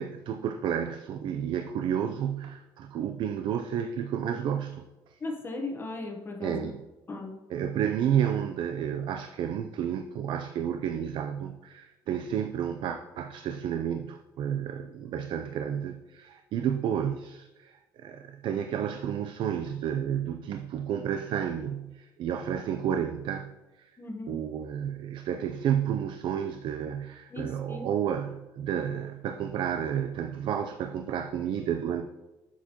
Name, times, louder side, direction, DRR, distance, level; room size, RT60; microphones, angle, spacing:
voice 1, 0.0-4.8 5.1-5.2 6.4-6.8 7.5-23.5 23.8-23.9 24.3-32.1, right 9 dB, 60° right, 6 dB, 0.5 m, -31 dB
voice 2, 5.2-6.7 7.1-7.3 24.0-24.4 27.3-27.9, left 2 dB, 25° left, 2 dB, 1.1 m, -37 dB
8.2 x 7.2 x 3.0 m, 1.0 s
cardioid pair, 110°, 9 cm